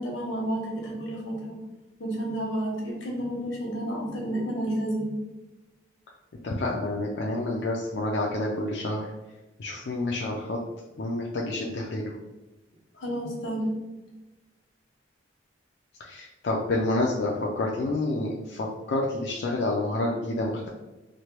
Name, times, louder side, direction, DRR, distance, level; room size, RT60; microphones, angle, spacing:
voice 1, 0.0-1.6 2.0-5.1 13.0-13.7, right 1 dB, 85° left, -1 dB, 1.0 m, -30 dB
voice 2, 6.4-9.1 9.6-10.6 11.0-12.2 16.0-20.7, left 2 dB, 60° left, -3 dB, 0.3 m, -28 dB
3.1 x 2.2 x 2.9 m, 1.1 s
head